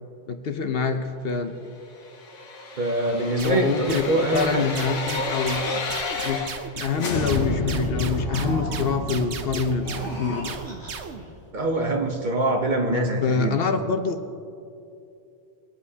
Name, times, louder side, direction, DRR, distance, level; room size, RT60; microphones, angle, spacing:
voice 1, 0.3-1.5 3.3-5.6 6.2-6.4 6.7-10.5 12.9-14.2, left 5 dB, 60° left, 6 dB, 0.9 m, -26 dB
sound 1, 2.0-6.7 7.0-11.9 12.2-12.3, left 3 dB, 90° left, 1.3 m, -31 dB
voice 2, 2.8-4.7 11.5-13.6, right 2 dB, 45° right, 3 dB, 0.9 m, -24 dB
sound 2, 3.4-11.2, right 6 dB, 70° right, 1.0 m, -36 dB
sound 3, 7.8-9.1 9.7-11.3, equal, 15° left, 2.0 m, -38 dB
20.5 x 8.5 x 2.8 m, 2.6 s
omnidirectional pair, 1.2 m